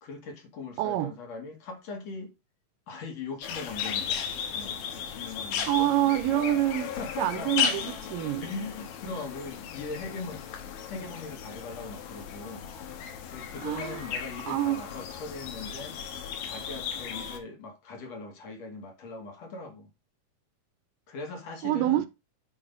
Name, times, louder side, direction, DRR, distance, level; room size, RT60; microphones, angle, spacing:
voice 1, 0.0-2.3 2.9-6.7 7.0-7.7 8.4-10.4 10.9-12.7 13.3-16.0 16.4-19.9 21.1-22.1, left 3 dB, 55° left, 2.5 m, -40 dB
voice 2, 0.8-1.1 5.7-6.9 7.2-8.4 13.6-14.0 14.5-14.8 21.6-22.1, right 14 dB, 80° right, 2.4 m, -26 dB
sound 1, 3.4-17.4, left 8 dB, 80° left, 2.7 m, -35 dB
9.8 x 3.4 x 5.1 m
omnidirectional pair, 3.9 m